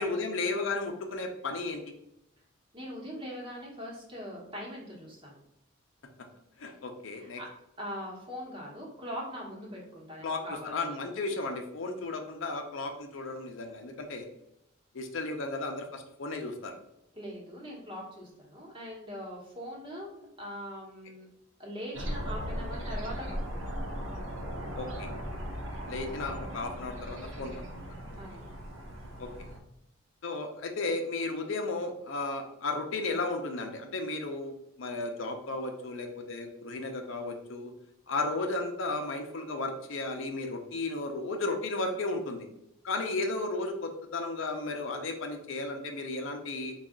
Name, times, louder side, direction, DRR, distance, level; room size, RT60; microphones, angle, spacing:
voice 1, 0.0-1.8 6.6-7.4 10.2-14.3 14.9-16.8 24.8-25.1 25.9-27.5 29.2-29.5 30.2-34.5 34.8-37.7 38.1-42.5 42.8-46.7, left 3 dB, 70° left, 4 dB, 0.6 m, -34 dB
voice 2, 2.7-5.4 7.1-7.5 7.8-10.8 17.1-21.3 21.6-23.2 23.5-23.8 28.2-28.5, equal, 25° right, -3 dB, 1.0 m, -41 dB
sound 1, 21.9-29.6, equal, 75° right, 0.9 m, -38 dB
4.1 x 2.4 x 3.6 m, 0.81 s
head